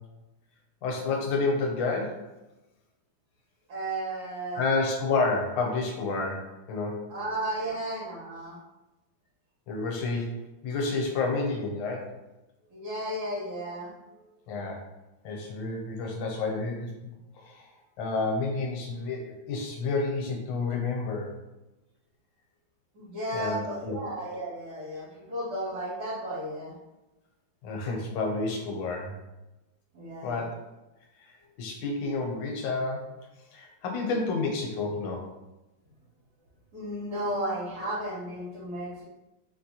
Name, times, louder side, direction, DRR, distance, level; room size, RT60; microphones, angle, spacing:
voice 1, 0.8-2.2 4.5-7.1 9.7-10.3 10.6-12.1 14.5-14.8 15.2-16.9 17.3-17.7 18.0-21.3 23.3-24.0 27.6-29.1 30.2-30.5 31.2-31.3 31.6-33.1 33.5-35.3, left 3 dB, 70° left, 1 dB, 1.4 m, -30 dB
voice 2, 3.7-4.6 7.1-8.6 12.7-13.9 22.9-26.7 29.9-30.4 36.7-39.0, right 1 dB, 80° right, -8 dB, 2.6 m, -34 dB
4.5 x 2.1 x 2.8 m, 1.0 s
omnidirectional pair, 2.2 m